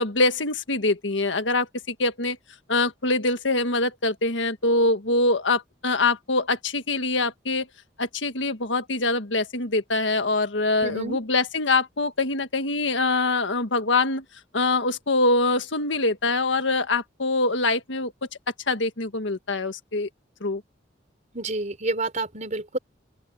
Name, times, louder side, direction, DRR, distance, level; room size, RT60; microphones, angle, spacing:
voice 1, 0.0-2.4 2.7-7.7 8.0-14.2 14.5-18.3 18.7-20.1 20.4-20.6, left 2 dB, 80° left, 1.6 m, -24 dB
voice 2, 10.8-11.2 21.3-22.8, right 2 dB, 40° right, 4.3 m, -29 dB
open air
head